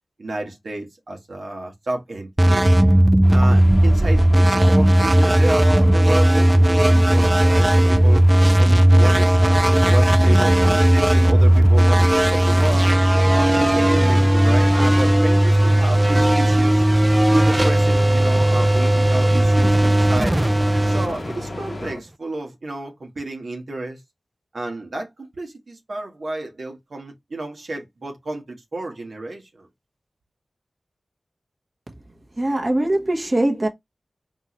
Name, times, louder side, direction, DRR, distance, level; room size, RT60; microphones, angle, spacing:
voice 1, 0.2-2.7 3.3-8.2 8.6-12.9 13.3-16.9 17.3-20.4 20.8-24.0 24.5-29.7, right 2 dB, 75° right, 1.4 m, -30 dB
sound 1, 2.4-21.9, right 1 dB, 20° right, 0.5 m, -16 dB
sound 2, 3.2-21.9, left 2 dB, 60° left, 1.2 m, -36 dB
sound 3, 10.2-22.0, left 3 dB, 85° left, 0.9 m, -38 dB
voice 2, 32.4-33.7, right 1 dB, 35° right, 1.3 m, -21 dB
4.2 x 3.7 x 3.1 m
wide cardioid pair, 60°, 0 cm